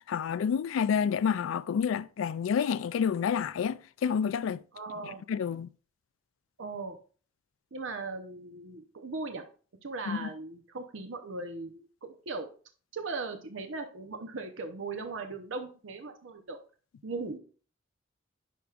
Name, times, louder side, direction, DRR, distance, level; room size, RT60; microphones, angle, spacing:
voice 1, 0.1-4.6 5.3-5.7 10.1-10.3, left 7 dB, 80° left, 0.3 m, -29 dB
voice 2, 4.7-5.2 6.6-7.0 7.7-9.4 9.8-12.5 12.9-16.6 17.0-17.4, right 3 dB, 75° right, 0.8 m, -38 dB
10.0 x 4.7 x 2.4 m
head